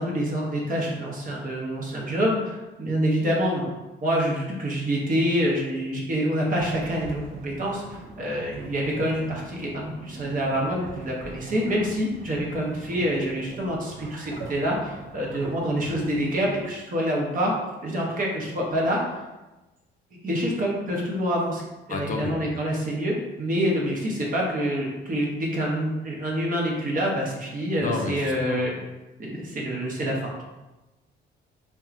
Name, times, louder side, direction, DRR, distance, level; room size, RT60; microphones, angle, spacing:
voice 1, 0.0-3.6 4.0-17.5 17.8-19.0 20.2-21.6 21.9-28.8 29.2-30.4, equal, 45° right, -3 dB, 0.8 m, -26 dB
sound 1, 6.6-16.6, right 3 dB, 75° right, 0.6 m, -41 dB
voice 2, 21.9-22.4 27.8-28.6, left 4 dB, 40° left, 2 dB, 0.4 m, -30 dB
2.8 x 2.2 x 2.4 m, 1.1 s
cardioid pair, 90°, 20 cm